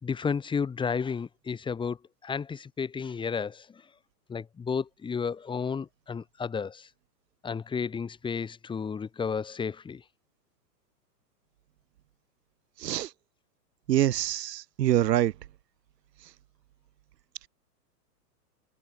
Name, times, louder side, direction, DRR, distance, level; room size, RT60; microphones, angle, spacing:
voice 1, 0.0-2.0 2.2-3.7 4.3-6.9 7.4-10.0, left 6 dB, 10° left, 4.5 m, -32 dB
voice 2, 12.8-13.1 13.9-15.3, right 12 dB, 80° right, 1.0 m, -25 dB
hypercardioid pair, 160°, 49 cm